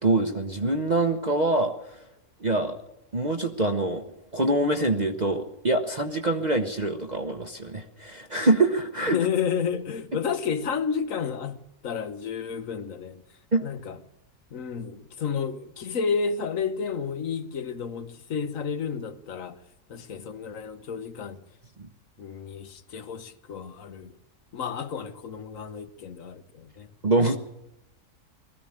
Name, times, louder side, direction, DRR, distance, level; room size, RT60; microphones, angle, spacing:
voice 1, 0.0-2.0 2.4-2.8 3.1-4.0 4.3-9.2 13.5-13.6 21.8-21.9 27.0-27.4, right 2 dB, 35° right, 1.0 m, -24 dB
voice 2, 9.1-13.2 13.6-14.0 14.5-19.6 19.9-21.4 22.2-24.1 24.5-26.9, left 6 dB, 60° left, 1.4 m, -31 dB
20.0 x 14.5 x 8.8 m
omnidirectional pair, 1.6 m